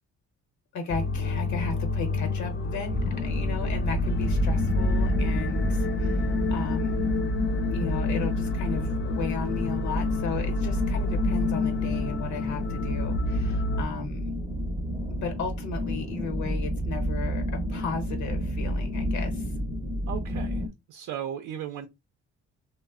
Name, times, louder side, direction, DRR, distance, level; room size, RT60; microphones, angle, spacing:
voice 1, 0.7-7.0 7.7-14.4 15.1-19.5, left 4 dB, 70° left, 0.9 m, -35 dB
sound 1, 0.9-13.8, left 3 dB, 35° left, 0.4 m, -29 dB
sound 2, 2.9-20.7, equal, 10° right, 0.6 m, -30 dB
voice 2, 20.1-20.6 20.9-21.9, right 9 dB, 80° right, 0.5 m, -35 dB
3.0 x 2.1 x 2.3 m
cardioid pair, 90°, 30 cm